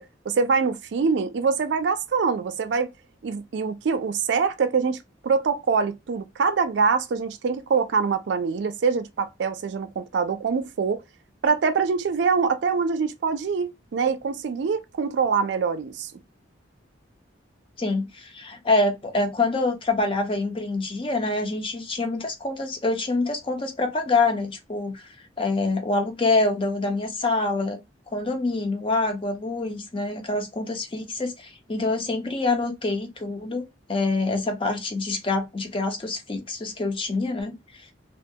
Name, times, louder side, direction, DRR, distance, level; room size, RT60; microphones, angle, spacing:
voice 1, 0.0-2.9 3.2-11.0 11.4-16.1, right 5 dB, 65° right, 0.4 m, -24 dB
voice 2, 17.8-25.0 25.4-27.8 28.1-33.6 33.9-37.6, left 3 dB, 30° left, 0.5 m, -26 dB
2.3 x 2.2 x 2.7 m
head